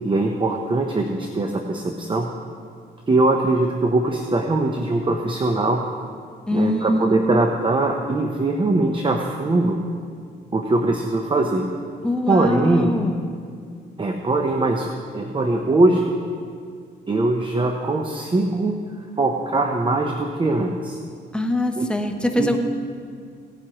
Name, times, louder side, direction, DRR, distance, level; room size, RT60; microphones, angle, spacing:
voice 1, 0.0-2.3 3.1-5.8 6.5-9.8 10.5-11.7 12.3-12.9 14.0-16.1 17.1-18.8 19.2-21.0 21.8-21.9 22.4-22.6, right 2 dB, 25° right, 3 dB, 0.8 m, -21 dB
voice 2, 6.5-7.4 12.0-13.2 21.3-22.6, left 1 dB, 5° left, 3 dB, 1.0 m, -23 dB
17.5 x 9.4 x 3.0 m, 2.2 s
cardioid pair, 90°, 20 cm